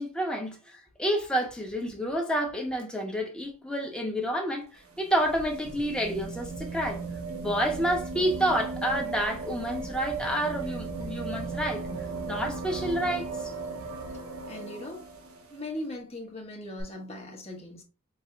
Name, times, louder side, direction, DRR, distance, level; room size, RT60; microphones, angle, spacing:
voice 1, 0.0-7.0 7.3-11.8 12.3-13.5, equal, 5° left, 1.0 m, -29 dB
sound 1, 4.6-15.6 16.8-16.9, right 4 dB, 80° right, 1.1 m, -36 dB
voice 2, 14.5-15.1 15.5-17.8, left 1 dB, 30° left, 1.1 m, -39 dB
5.2 x 2.7 x 2.4 m
head